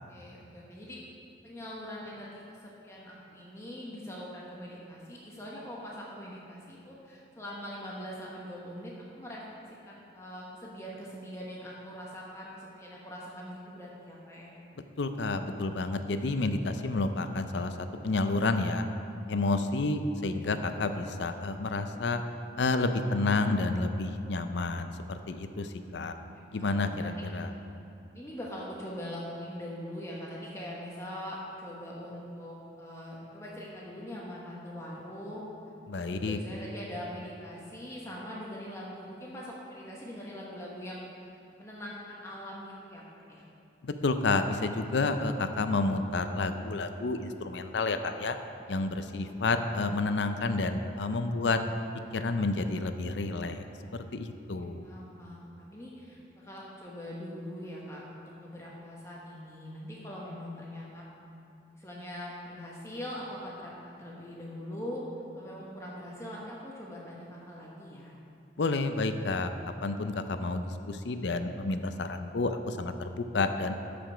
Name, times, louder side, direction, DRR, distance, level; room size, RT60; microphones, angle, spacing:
voice 1, 0.1-1.0 1.4-9.4 9.8-14.5 16.3-16.6 20.4-20.5 25.7-27.1 28.1-35.4 35.9-41.3 41.6-43.4 49.1-49.6 54.5-61.0 61.7-65.0 65.3-68.1, equal, 15° left, -4 dB, 1.0 m, -42 dB
voice 2, 15.0-17.7 18.0-18.8 19.3-22.2 22.6-26.1 26.5-27.5 35.9-36.4 43.8-48.4 48.7-51.6 52.1-53.6 54.1-54.8 68.6-69.5 69.8-73.7, left 3 dB, 75° left, 8 dB, 0.6 m, -30 dB
13.0 x 5.2 x 5.1 m, 2.7 s
head